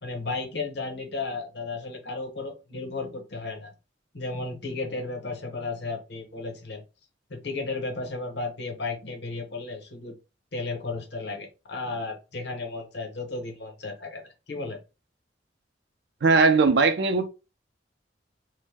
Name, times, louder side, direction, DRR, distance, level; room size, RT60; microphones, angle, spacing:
voice 1, 0.0-3.7 4.1-6.8 7.3-10.2 10.5-14.8, left 3 dB, 65° left, 0.8 m, -34 dB
voice 2, 16.2-17.3, right 4 dB, 65° right, 0.5 m, -19 dB
2.6 x 2.0 x 3.4 m
head